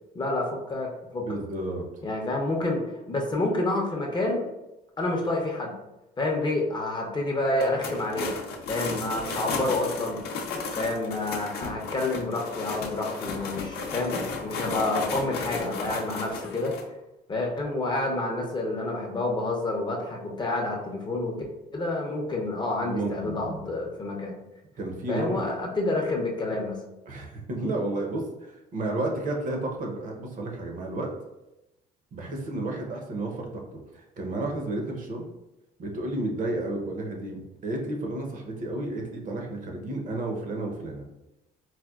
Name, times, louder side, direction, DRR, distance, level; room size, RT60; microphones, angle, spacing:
voice 1, 0.1-1.4 2.0-2.8 3.1-4.5 5.0-5.7 6.2-8.3 8.7-10.2 10.8-16.7 17.3-21.3 21.7-24.3 25.1-26.8, left 2 dB, 25° left, 0 dB, 0.6 m, -28 dB
voice 2, 1.2-1.8 22.8-23.6 24.8-25.5 27.1-31.1 32.1-33.6 33.9-35.3 35.8-41.0, right 2 dB, 50° right, 1 dB, 0.7 m, -32 dB
sound 1, 7.5-16.8, left 4 dB, 70° left, 0.6 m, -34 dB
4.1 x 2.1 x 2.3 m, 0.97 s
cardioid pair, 110°, 17 cm